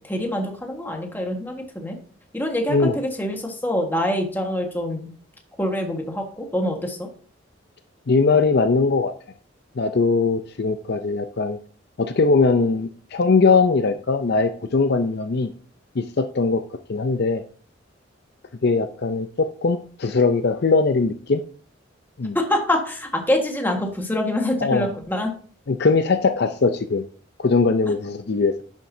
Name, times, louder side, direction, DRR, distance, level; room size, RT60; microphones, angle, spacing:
voice 1, 0.0-2.0 2.3-5.1 5.6-7.0 22.3-25.3, left 1 dB, 10° left, 2 dB, 1.4 m, -25 dB
voice 2, 8.1-9.1 9.8-11.6 12.0-15.5 16.0-16.6 16.9-17.4 18.6-21.4 22.2-22.4 24.6-24.9 25.7-27.0 27.4-28.6, left 4 dB, 55° left, 8 dB, 0.5 m, -20 dB
10.5 x 7.2 x 2.7 m, 0.43 s
head